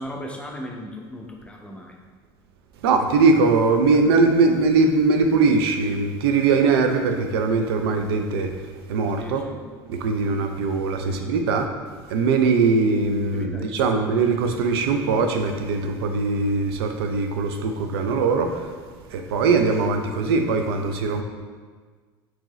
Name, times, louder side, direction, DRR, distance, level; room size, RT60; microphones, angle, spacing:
voice 1, 0.0-2.0 9.2-9.6 11.0-11.4 13.2-14.0, left 1 dB, 10° left, 0 dB, 0.7 m, -37 dB
voice 2, 2.8-8.5 8.9-9.4 9.9-11.7 12.1-18.7 19.1-21.2, right 4 dB, 80° right, 5 dB, 0.4 m, -21 dB
4.5 x 2.9 x 3.0 m, 1.5 s
hypercardioid pair, 75°, 13 cm